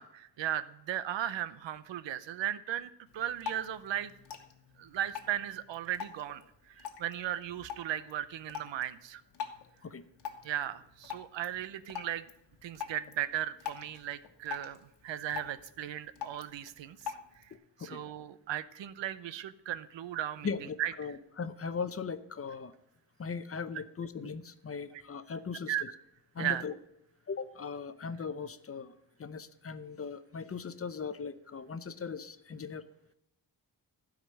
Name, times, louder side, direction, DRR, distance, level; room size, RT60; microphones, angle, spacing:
voice 1, 0.0-4.1 4.8-6.4 6.7-9.2 10.4-12.3 12.6-14.8 15.0-17.1 17.8-20.5 20.8-20.9 24.9-25.0 25.7-25.8 26.4-26.6, right 11 dB, 85° right, 14 dB, 0.7 m, -36 dB
Drip, 3.1-17.6, left 8 dB, 70° left, 1.4 m, -46 dB
voice 2, 20.4-22.7 23.2-25.9 26.3-26.7 27.3-32.9, left 5 dB, 35° left, 12 dB, 0.7 m, -39 dB
12.5 x 5.0 x 7.5 m, 0.81 s
cardioid pair, 110°, 43 cm